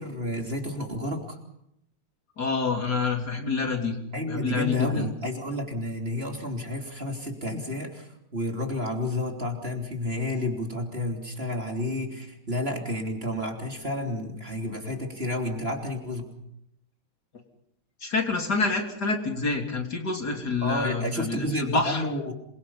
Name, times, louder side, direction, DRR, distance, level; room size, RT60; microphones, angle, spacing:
voice 1, 0.0-1.4 4.1-16.3 20.6-22.3, left 1 dB, 30° right, 2 dB, 3.4 m, -31 dB
voice 2, 2.4-4.0 4.3-5.1 18.0-22.0, left 4 dB, 50° left, 2 dB, 3.7 m, -27 dB
27.5 x 23.0 x 5.6 m, 0.78 s
omnidirectional pair, 2.3 m